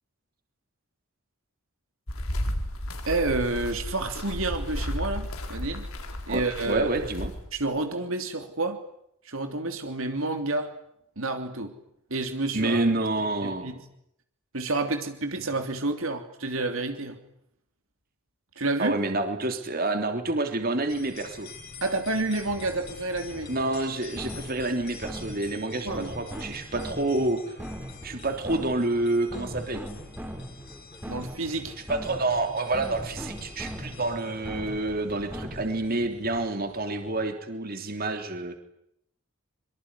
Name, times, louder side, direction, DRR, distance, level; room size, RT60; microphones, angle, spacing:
sound 1, 2.1-7.6, equal, 75° left, 4.5 m, -33 dB
voice 1, 3.1-5.8 6.3-6.9 7.5-8.8 9.2-10.7 11.2-11.7 12.1-12.8 13.4-13.8 14.5-17.2 18.6-19.0 21.8-23.5 25.8-26.1 31.1-31.8, right 2 dB, 70° right, 6 dB, 3.1 m, -29 dB
voice 2, 6.3-7.3 12.5-13.8 18.8-21.5 23.5-27.5 28.0-29.8 31.9-38.6, right 2 dB, 45° right, 6 dB, 3.2 m, -28 dB
sound 2, 20.9-37.4, left 4 dB, 45° left, 5.2 m, -47 dB
sound 3, 22.5-36.0, equal, 10° right, 3.8 m, -40 dB
25.5 x 24.0 x 9.8 m, 0.74 s
head